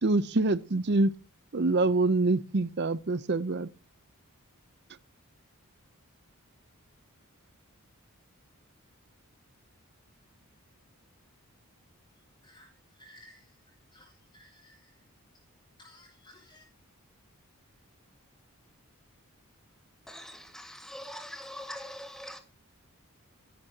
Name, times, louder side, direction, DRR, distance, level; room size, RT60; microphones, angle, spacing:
voice 1, 0.0-1.1 1.5-3.7, right 2 dB, 50° right, 0.7 m, -25 dB
voice 2, 12.4-13.6 13.9-14.9 15.8-16.6, left 1 dB, 20° left, 6.2 m, -57 dB
voice 3, 20.1-22.4, equal, ahead, 1.8 m, -43 dB
15.5 x 11.5 x 2.9 m
head